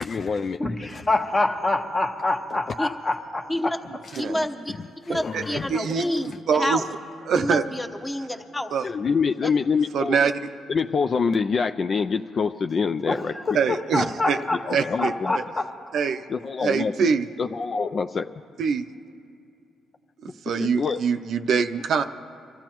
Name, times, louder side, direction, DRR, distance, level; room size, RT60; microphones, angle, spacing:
voice 1, 0.0-0.6 0.9-1.0 2.5-2.6 4.0-4.2 5.0-5.8 8.8-10.2 10.7-13.3 14.3-15.4 16.3-17.1 17.4-18.3 20.6-21.0, left 5 dB, 45° left, 8 dB, 0.4 m, -26 dB
voice 2, 0.6-3.7 13.1-13.2 13.5-14.6 15.0-15.7, left 2 dB, 30° left, 4 dB, 1.2 m, -26 dB
voice 3, 4.2-4.7 5.1-6.9 7.3-8.7 9.4-9.5, left 1 dB, 10° left, 6 dB, 1.0 m, -28 dB
voice 4, 5.1-6.1 6.5-6.8 7.3-7.6 8.7-8.8 9.9-10.3 13.5-14.4 14.7-15.4 15.9-16.2 16.6-17.3 18.6-18.8 20.5-22.0, right 6 dB, 65° right, 7 dB, 0.5 m, -24 dB
25.5 x 14.0 x 3.0 m, 2.5 s
cardioid pair, 90°, 0 cm